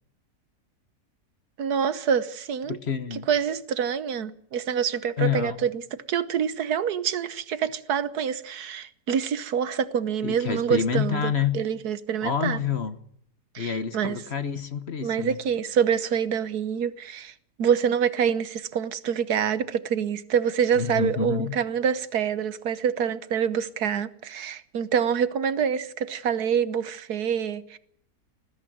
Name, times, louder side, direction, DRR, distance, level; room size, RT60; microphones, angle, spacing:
voice 1, 1.6-2.8 3.3-12.6 13.5-14.2 15.0-27.8, right 8 dB, 75° right, 1.6 m, -26 dB
voice 2, 2.7-3.3 5.2-5.6 10.2-11.6 12.2-13.0 13.6-15.4 20.8-21.6, left 7 dB, 45° left, 1.2 m, -28 dB
20.0 x 15.0 x 9.2 m
omnidirectional pair, 1.7 m